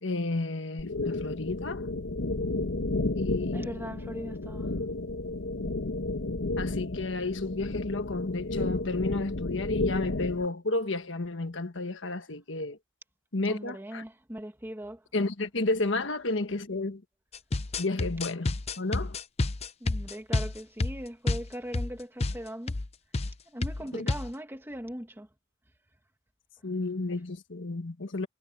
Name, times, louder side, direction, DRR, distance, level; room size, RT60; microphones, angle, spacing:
voice 1, 0.0-1.8 3.1-3.8 6.6-12.8 13.3-14.0 15.1-17.0 17.8-19.2 23.9-24.1 26.6-28.3, left 2 dB, 65° left, 1.5 m, -31 dB
sound 1, 0.8-10.5, left 2 dB, 90° left, 1.3 m, -32 dB
voice 2, 3.5-4.7 13.5-15.1 19.8-22.8 23.5-25.3, equal, 10° right, 1.4 m, -40 dB
sound 2, 17.3-21.9 22.2-22.4 22.7-22.9 23.1-23.3 23.6-24.3, left 2 dB, 30° left, 0.6 m, -30 dB
head